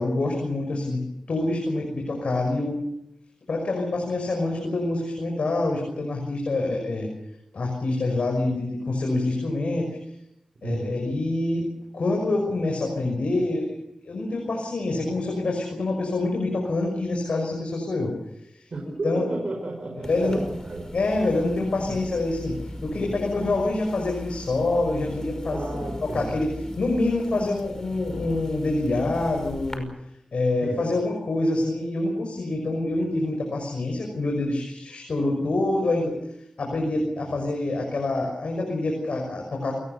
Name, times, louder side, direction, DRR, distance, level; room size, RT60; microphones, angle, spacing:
voice 1, 0.0-2.8 3.5-7.1 7.5-10.0 10.6-11.7 11.9-13.8 14.0-18.1 18.4-18.7 19.0-19.2 20.1-20.4 20.9-25.8 26.1-26.5 26.8-29.9 30.3-36.1 36.6-39.7, left 2 dB, 80° left, 1 dB, 6.0 m, -26 dB
voice 2, 10.6-11.0 18.7-20.9 21.9-22.0 22.9-23.2 25.5-26.4 30.6-30.8 37.3-37.4, right 2 dB, 60° right, 2 dB, 5.1 m, -33 dB
sound 1, 20.0-29.8, left 1 dB, 30° left, 5.7 m, -39 dB
28.0 x 20.0 x 6.8 m, 0.82 s
wide cardioid pair, 65°, 2 cm